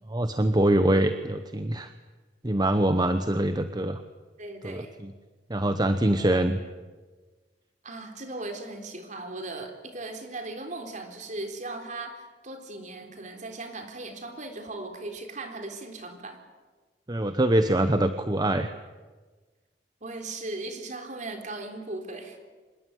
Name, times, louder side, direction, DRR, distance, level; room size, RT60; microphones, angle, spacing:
voice 1, 0.1-1.9 2.4-4.0 4.6-5.1 5.5-6.6 17.1-18.7, right 1 dB, 25° right, 9 dB, 1.0 m, -24 dB
voice 2, 4.4-4.9 7.8-16.4 20.0-22.4, right 2 dB, 45° right, 5 dB, 3.9 m, -38 dB
26.0 x 21.0 x 9.4 m, 1.4 s
head